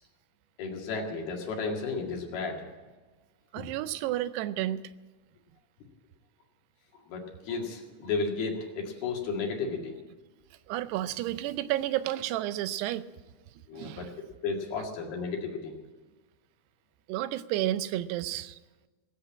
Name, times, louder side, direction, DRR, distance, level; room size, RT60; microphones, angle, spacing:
voice 1, 0.6-2.6 3.6-3.7 7.1-10.0 13.7-14.1 14.4-15.7, left 4 dB, 75° left, 1 dB, 4.0 m, -33 dB
voice 2, 3.5-4.8 10.7-13.1 13.7-14.1 17.1-18.6, right 14 dB, 90° right, 14 dB, 2.7 m, -31 dB
18.5 x 8.3 x 8.6 m, 1.3 s
omnidirectional pair, 4.6 m